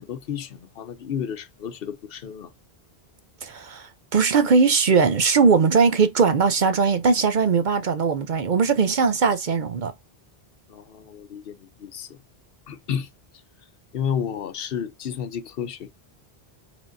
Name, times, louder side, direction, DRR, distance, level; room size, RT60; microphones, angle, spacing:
voice 1, 0.0-2.5 10.7-12.2 12.7-13.1 13.9-15.9, left 8 dB, 65° left, 0.8 m, -31 dB
voice 2, 3.4-9.9, right 5 dB, 55° right, 0.7 m, -20 dB
5.0 x 3.6 x 2.5 m
omnidirectional pair, 1.1 m